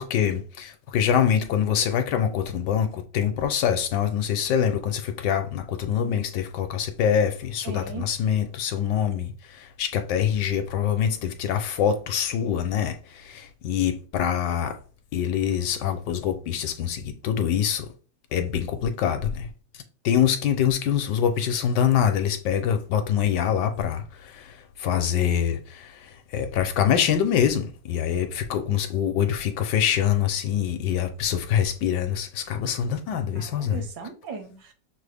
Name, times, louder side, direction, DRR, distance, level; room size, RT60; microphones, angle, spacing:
voice 1, 0.0-14.8 15.1-17.9 18.3-19.5 20.0-33.8, left 9 dB, 75° left, 1.2 m, -25 dB
voice 2, 7.6-8.1 33.4-34.7, right 5 dB, 75° right, 1.4 m, -37 dB
6.0 x 2.0 x 3.3 m
omnidirectional pair, 2.0 m